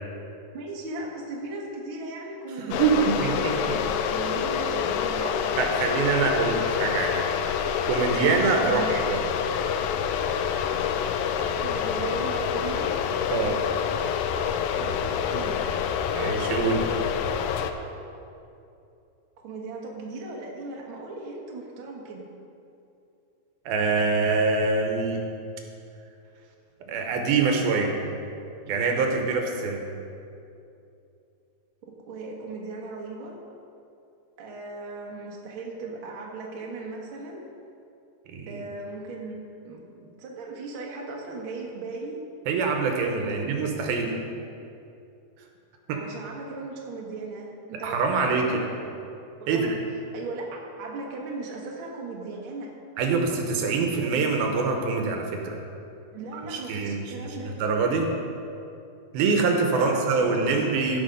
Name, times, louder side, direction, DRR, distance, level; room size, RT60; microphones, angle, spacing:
voice 1, 0.5-5.5 8.6-8.9 11.6-13.0 14.7-15.7 19.4-22.2 31.8-33.4 34.4-37.4 38.5-42.2 43.3-43.4 45.9-48.8 49.4-49.7 50.1-52.8 56.1-57.6 59.7-60.8, right 3 dB, 60° right, -2 dB, 1.4 m, -37 dB
voice 2, 2.6-3.8 5.6-7.3 7.8-9.2 13.3-13.6 16.1-16.9 23.7-25.2 26.9-28.0 28.7-29.8 38.3-38.6 42.5-44.1 45.9-46.0 47.8-48.4 49.5-49.8 53.0-55.6 56.3-57.0 57.6-58.1 59.1-61.0, right 4 dB, 80° right, 3 dB, 2.7 m, -24 dB
sound 1, 2.7-17.7, left 7 dB, 80° left, 2.2 m, -27 dB
15.5 x 6.1 x 5.2 m, 2.7 s
omnidirectional pair, 4.5 m